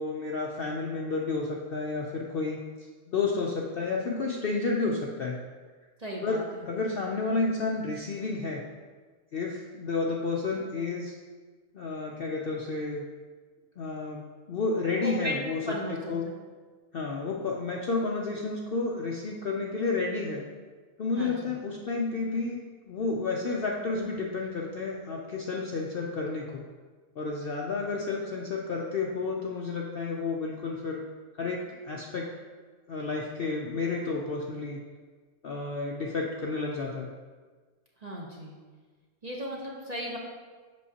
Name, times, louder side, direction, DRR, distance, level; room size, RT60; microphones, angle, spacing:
voice 1, 0.0-2.6 3.1-5.4 6.2-8.6 9.3-11.1 11.7-13.0 13.8-16.3 16.9-20.4 21.0-22.6 22.9-26.6 27.2-31.0 31.3-32.3 32.9-34.8 35.4-37.1, left 3 dB, 60° left, -1 dB, 0.6 m, -31 dB
voice 2, 6.0-6.7 15.0-16.1 21.1-21.5 38.0-38.6 39.2-40.2, equal, 35° right, -3 dB, 0.8 m, -36 dB
7.5 x 6.3 x 2.8 m, 1.4 s
omnidirectional pair, 1.5 m